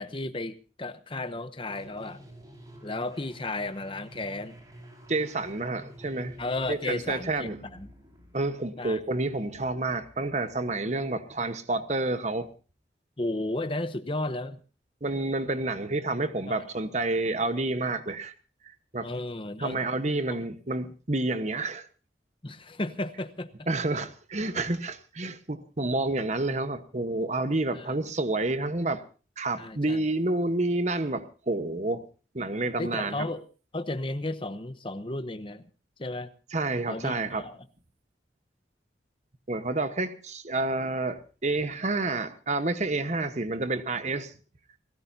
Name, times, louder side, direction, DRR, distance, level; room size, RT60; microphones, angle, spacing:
voice 1, 0.0-2.2 2.8-4.6 6.4-7.9 8.8-9.0 13.2-14.6 16.5-16.7 19.0-19.8 22.4-23.5 27.7-27.9 29.6-30.0 32.8-33.4 33.7-35.6 36.0-36.3 36.9-37.6, left 2 dB, 30° left, 0.9 m, -33 dB
sound 1, 1.7-10.8, equal, 20° right, 4.9 m, -50 dB
voice 2, 5.1-6.4 6.7-7.6 8.3-12.5 15.0-18.3 18.9-19.1 19.6-21.9 23.7-29.0 29.4-32.0 32.3-33.3 36.5-37.5 39.5-44.3, right 2 dB, 40° right, 1.1 m, -29 dB
29.0 x 14.5 x 2.7 m
head